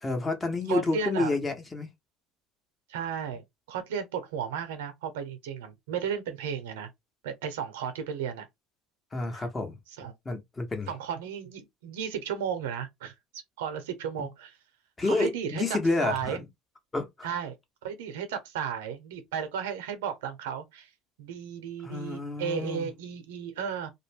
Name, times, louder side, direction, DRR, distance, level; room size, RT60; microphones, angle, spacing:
voice 1, 0.0-1.9 9.1-9.8 10.2-10.9 15.0-16.5 16.9-17.3 21.8-22.9, left 3 dB, 20° left, 1.0 m, -29 dB
voice 2, 0.7-1.4 2.9-6.9 7.2-8.5 9.3-9.4 10.0-10.1 10.9-13.1 13.6-14.5 15.0-15.6 16.0-16.4 17.2-17.6 17.8-20.9 21.2-23.9, right 7 dB, 90° right, 0.8 m, -34 dB
2.4 x 2.2 x 3.3 m
supercardioid pair, 95°, 0 cm